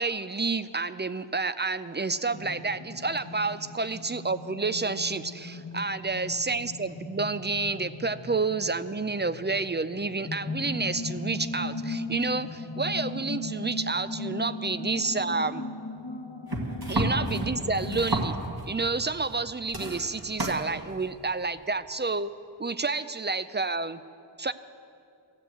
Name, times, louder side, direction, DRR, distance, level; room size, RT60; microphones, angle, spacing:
voice 1, 0.0-15.7 16.9-18.4 18.7-22.3 22.6-24.0 24.4-24.5, right 3 dB, 25° right, 13 dB, 0.3 m, -29 dB
sound 1, 2.3-18.0, left 3 dB, 60° left, 1.1 m, -38 dB
chopping onions, 16.5-18.7 19.2-19.4 19.7-20.6 21.6-21.7, right 2 dB, 55° right, 1.7 m, -30 dB
13.5 x 7.7 x 7.9 m, 2.5 s
wide cardioid pair, 45°, 44 cm